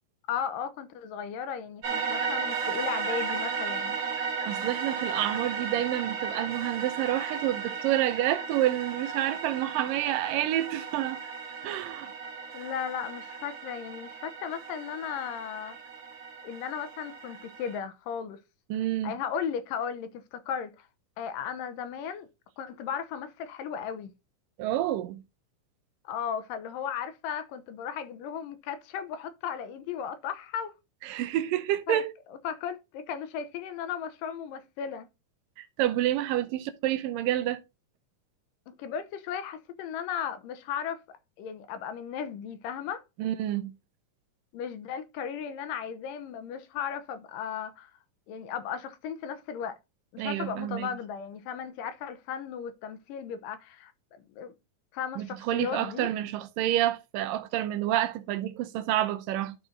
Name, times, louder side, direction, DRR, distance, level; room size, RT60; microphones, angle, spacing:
voice 1, 0.3-4.0 12.5-15.8 16.4-18.4 19.0-20.9 21.2-22.3 22.6-24.1 26.0-30.8 31.9-32.0 32.4-35.1 38.7-41.0 41.4-43.0 44.5-47.9 48.3-49.8 50.1-53.9 54.3-54.5 54.9-56.1, left 8 dB, 80° left, 2.5 m, -35 dB
sound 1, 1.8-17.8, right 5 dB, 45° right, 2.0 m, -35 dB
voice 2, 4.5-11.2 11.6-12.1 18.7-19.1 24.6-25.2 31.0-32.1 35.6-37.6 43.2-43.8 50.2-50.9 55.2-59.6, right 13 dB, 85° right, 2.4 m, -28 dB
12.0 x 4.2 x 3.7 m
omnidirectional pair, 3.9 m